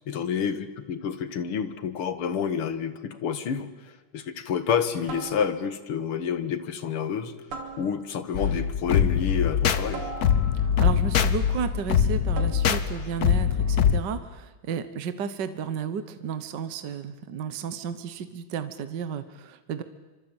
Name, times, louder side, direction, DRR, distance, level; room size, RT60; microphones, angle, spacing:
voice 1, 0.1-3.7 4.1-7.3 7.8-10.1, left 7 dB, 85° left, 12 dB, 2.5 m, -29 dB
sound 1, 3.3-3.6 5.1-5.9 7.5-8.3 9.9-10.9 12.3-12.9, right 4 dB, 85° right, 3.8 m, -40 dB
sound 2, 8.3-14.0, left 8 dB, 50° left, 1.5 m, -23 dB
voice 2, 10.8-19.8, right 7 dB, 55° right, 11 dB, 1.7 m, -33 dB
26.0 x 25.5 x 9.0 m, 1.2 s
omnidirectional pair, 2.4 m